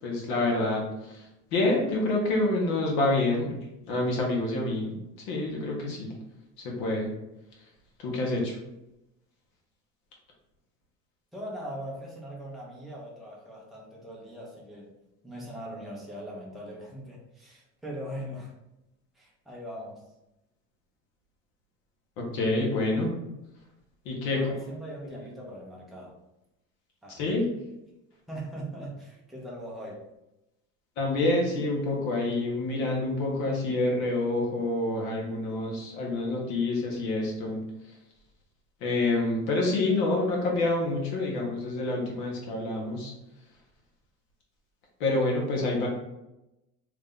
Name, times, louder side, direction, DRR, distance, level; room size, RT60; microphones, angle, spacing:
voice 1, 0.0-3.5 3.9-4.9 5.3-6.1 6.6-7.1 8.0-8.6 22.3-23.1 24.0-24.4 27.1-27.4 31.0-37.6 38.8-43.1 45.0-45.9, left 2 dB, 65° left, -1 dB, 1.3 m, -27 dB
voice 2, 11.3-14.9 15.2-18.5 19.1-20.0 24.3-26.1 27.0-27.2 28.3-30.0, equal, ahead, -5 dB, 0.5 m, -40 dB
3.2 x 2.6 x 3.6 m, 0.91 s
cardioid pair, 175°, 37 cm